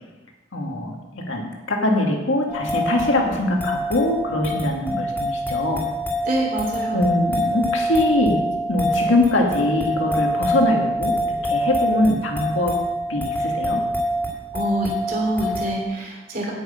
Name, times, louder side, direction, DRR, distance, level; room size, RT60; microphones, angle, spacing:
voice 1, 0.5-5.9 6.9-8.4 8.7-12.8 13.1-13.8, left 1 dB, 70° left, 1 dB, 2.1 m, -22 dB
sound 1, 2.5-15.8, equal, 10° left, 2.6 m, -25 dB
voice 2, 6.2-7.0 14.5-16.5, right 1 dB, 45° right, -1 dB, 3.0 m, -25 dB
9.3 x 6.4 x 8.8 m, 1.1 s
head